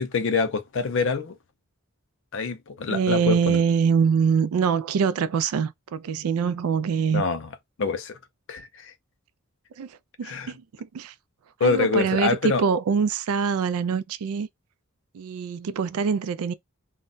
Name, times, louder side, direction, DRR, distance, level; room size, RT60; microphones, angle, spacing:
voice 1, 0.0-1.4 2.3-3.6 7.1-7.5 7.8-8.2 8.5-8.9 10.2-10.5 11.6-12.6, left 4 dB, 55° left, 0.5 m, -25 dB
voice 2, 2.9-7.2 9.8-11.1 11.6-14.5 15.1-16.5, right 6 dB, 75° right, 0.3 m, -24 dB
2.2 x 2.1 x 3.7 m
head